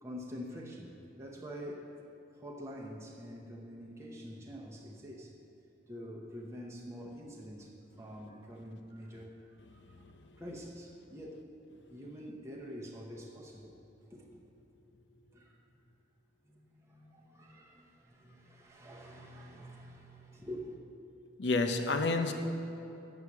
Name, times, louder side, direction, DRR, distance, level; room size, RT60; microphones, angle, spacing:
voice 1, 0.0-1.9 2.4-5.3 5.9-10.0 10.4-11.5 11.9-13.7 14.1-14.4 15.3-15.6 16.5-20.8, equal, 15° right, -2 dB, 0.8 m, -46 dB
voice 2, 9.9-10.4 21.4-22.3, left 3 dB, 70° left, 6 dB, 0.8 m, -31 dB
9.5 x 8.0 x 5.9 m, 2.9 s
head